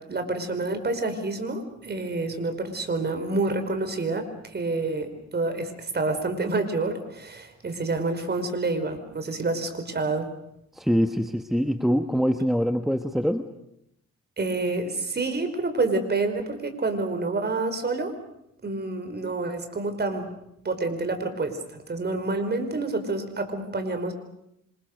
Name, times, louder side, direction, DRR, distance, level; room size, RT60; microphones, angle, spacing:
voice 1, 0.0-10.3 14.4-18.1 18.6-20.3 20.6-24.1, right 3 dB, 35° right, 7 dB, 5.0 m, -28 dB
voice 2, 10.7-13.5, equal, ahead, 7 dB, 1.4 m, -24 dB
27.0 x 27.0 x 6.7 m, 0.80 s
cardioid pair, 90°, 30 cm